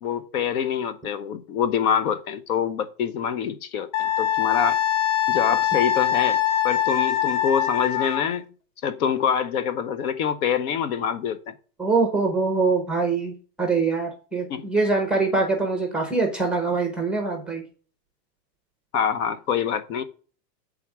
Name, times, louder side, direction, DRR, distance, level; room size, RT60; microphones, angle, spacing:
voice 1, 0.0-4.8 5.3-6.4 6.6-8.4 8.8-11.5 14.5-14.6 18.9-20.0, left 7 dB, 60° left, 0.9 m, -25 dB
Wind instrument woodwind instrument, 3.9-8.3, left 11 dB, 90° left, 1.2 m, -23 dB
voice 2, 11.8-17.6, right 3 dB, ahead, 0.6 m, -24 dB
8.4 x 3.6 x 4.8 m
supercardioid pair, 150°, 49 cm